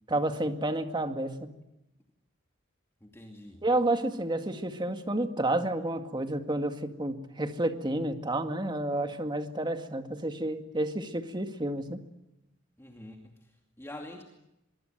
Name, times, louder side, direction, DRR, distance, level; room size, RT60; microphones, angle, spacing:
voice 1, 0.1-1.5 3.6-12.0, right 1 dB, 25° right, 6 dB, 2.1 m, -30 dB
voice 2, 3.0-3.6 12.8-14.2, left 1 dB, 15° left, 2 dB, 2.5 m, -46 dB
24.0 x 23.5 x 9.1 m, 0.89 s
head